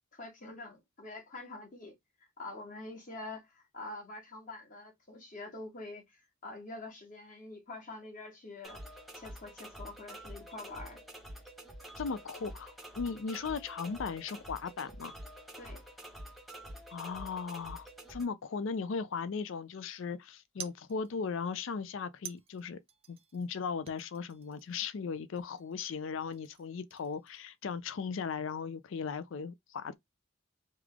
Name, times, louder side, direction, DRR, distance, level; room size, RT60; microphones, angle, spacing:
voice 1, 0.1-1.9 2.4-8.8 9.1-11.0 15.6-15.8, left 2 dB, 40° left, 1.1 m, -46 dB
sound 1, 8.6-18.2, equal, ahead, 0.7 m, -48 dB
voice 2, 12.0-15.2 16.9-22.8 23.1-29.9, left 5 dB, 65° left, 0.4 m, -37 dB
sound 2, 18.7-19.5 20.6-21.4 22.2-23.5 23.9-25.0 25.4-26.0 26.3-27.5, right 8 dB, 25° right, 0.4 m, -51 dB
3.2 x 2.4 x 3.4 m
head